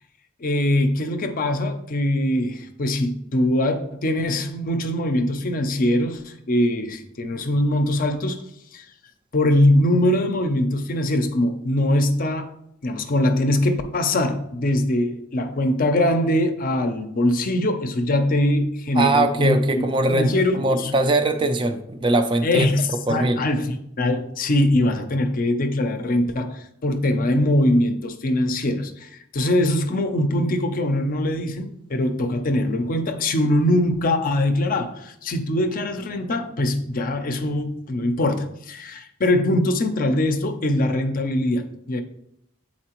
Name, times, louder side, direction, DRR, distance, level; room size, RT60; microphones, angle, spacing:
voice 1, 0.4-8.4 8.7-8.8 9.3-12.5 12.8-20.9 22.4-42.0, left 1 dB, 45° left, 7 dB, 0.5 m, -22 dB
voice 2, 18.9-22.7 23.1-23.4, right 2 dB, 25° right, 7 dB, 0.4 m, -21 dB
7.5 x 4.2 x 2.9 m, 0.76 s
head